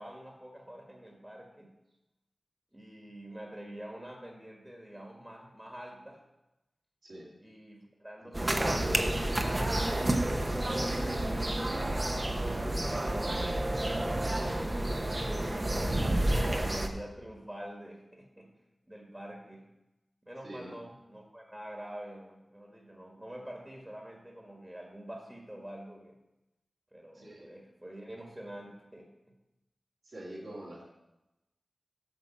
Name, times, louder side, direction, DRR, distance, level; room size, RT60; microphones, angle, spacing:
voice 1, 0.0-1.7 2.7-6.2 7.4-10.0 10.4-12.1 12.9-15.6 16.2-18.5 18.9-19.7 20.2-26.2 26.9-29.3, equal, 15° right, 1 dB, 1.5 m, -46 dB
sound 1, 8.3-16.9, right 1 dB, 30° right, 0.8 m, -30 dB
voice 2, 20.4-20.8 27.1-27.5 30.0-30.8, right 1 dB, 80° right, -6 dB, 2.5 m, -45 dB
8.6 x 6.1 x 4.4 m, 0.96 s
wide cardioid pair, 55°, 0 cm